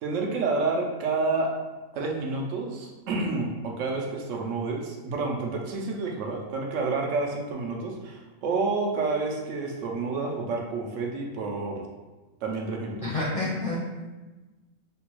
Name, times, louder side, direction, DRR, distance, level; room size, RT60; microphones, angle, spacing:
voice 1, 0.0-1.5 1.9-11.8 12.4-13.1, right 3 dB, 75° right, 0 dB, 0.9 m, -29 dB
voice 2, 13.0-14.2, left 2 dB, 55° left, -8 dB, 0.4 m, -30 dB
3.2 x 2.2 x 3.0 m, 1.2 s
omnidirectional pair, 1.4 m